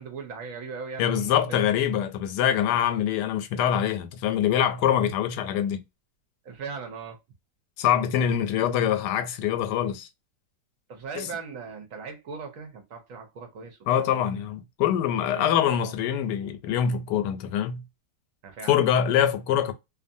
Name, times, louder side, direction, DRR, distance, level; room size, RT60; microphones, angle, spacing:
voice 1, 0.0-1.6 6.4-7.2 10.9-14.5 15.3-15.9 18.4-19.0, right 5 dB, 65° right, 0.9 m, -39 dB
voice 2, 1.0-5.8 7.8-10.1 11.2-11.3 13.9-17.8 18.7-19.7, left 9 dB, 85° left, 1.2 m, -24 dB
2.6 x 2.5 x 2.6 m
omnidirectional pair, 1.8 m